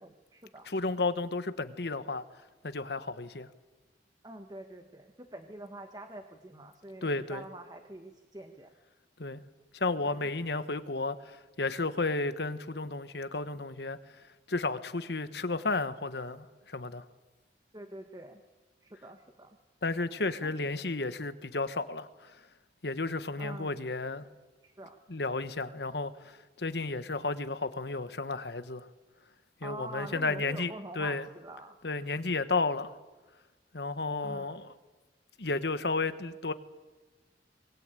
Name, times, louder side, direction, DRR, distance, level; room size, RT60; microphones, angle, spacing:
voice 1, 0.0-0.7 4.2-8.7 10.0-10.3 17.7-18.4 18.8-19.6 20.4-20.5 23.4-23.8 24.6-25.0 29.6-31.8 34.2-34.6, right 1 dB, 20° right, 1.3 m, -46 dB
voice 2, 0.7-2.2 2.6-3.5 7.0-7.4 9.2-9.4 9.7-14.0 14.5-17.0 19.8-22.4 22.8-24.3 25.1-28.9 29.6-31.3 31.8-33.0 33.7-34.7 35.4-36.5, left 3 dB, 65° left, 1.3 m, -33 dB
23.5 x 21.0 x 9.1 m
head